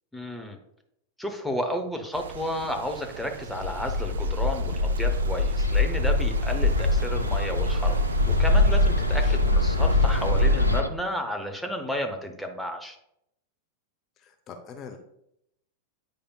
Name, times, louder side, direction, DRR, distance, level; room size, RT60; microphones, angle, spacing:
voice 1, 0.1-0.6 1.2-13.0, equal, ahead, 3 dB, 0.8 m, -32 dB
sound 1, 2.1-10.8, right 7 dB, 65° right, 0.3 m, -38 dB
Bird, 3.6-10.9, left 2 dB, 85° left, 0.4 m, -23 dB
voice 2, 9.1-9.4 14.2-15.0, left 6 dB, 35° left, 6 dB, 0.7 m, -43 dB
8.6 x 5.0 x 2.3 m, 0.77 s
figure-of-eight pair, 90°, 0 cm